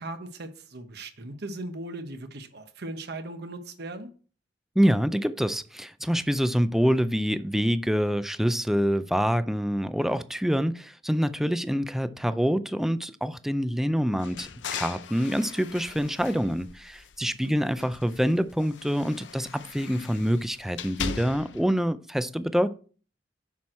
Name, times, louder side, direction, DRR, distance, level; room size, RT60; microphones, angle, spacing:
voice 1, 0.0-4.1 17.2-17.9, right 2 dB, 65° right, 1.0 m, -38 dB
voice 2, 4.8-22.7, equal, ahead, 0.4 m, -26 dB
sound 1, 14.2-17.4 17.7-21.7, left 6 dB, 75° left, 0.6 m, -39 dB
7.3 x 6.1 x 4.4 m
head